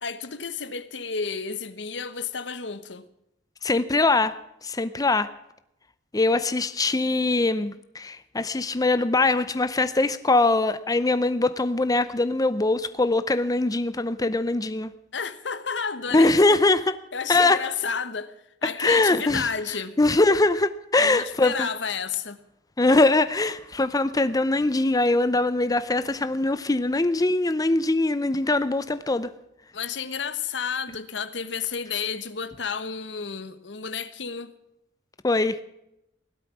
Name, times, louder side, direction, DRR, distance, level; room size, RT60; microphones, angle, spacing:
voice 1, 0.0-3.1 15.1-16.6 17.1-18.3 18.6-20.0 21.0-22.4 29.7-34.5, left 6 dB, 70° left, 1.1 m, -31 dB
voice 2, 3.6-4.3 4.6-5.3 6.1-14.9 16.1-16.8 17.3-17.6 18.6-19.5 20.0-21.7 22.8-29.3 35.2-35.6, left 2 dB, 20° left, 0.6 m, -22 dB
17.5 x 12.0 x 6.1 m
head